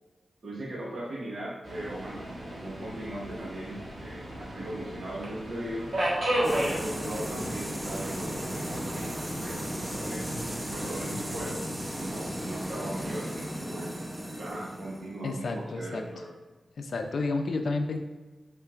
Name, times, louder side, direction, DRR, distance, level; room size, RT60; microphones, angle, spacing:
voice 1, 0.4-5.9 6.4-9.6 9.9-10.2 10.7-14.0 14.4-16.3, right 1 dB, 70° right, -4 dB, 1.0 m, -39 dB
Subway metro underground, 1.6-11.5, right 1 dB, 85° right, 1.2 m, -35 dB
sound 1, 6.4-16.1, equal, 15° right, 0.6 m, -36 dB
voice 2, 15.2-16.0 16.8-18.0, left 3 dB, 80° left, 5 dB, 0.4 m, -30 dB
5.6 x 3.7 x 2.4 m, 1.3 s
wide cardioid pair, 75°, 0 cm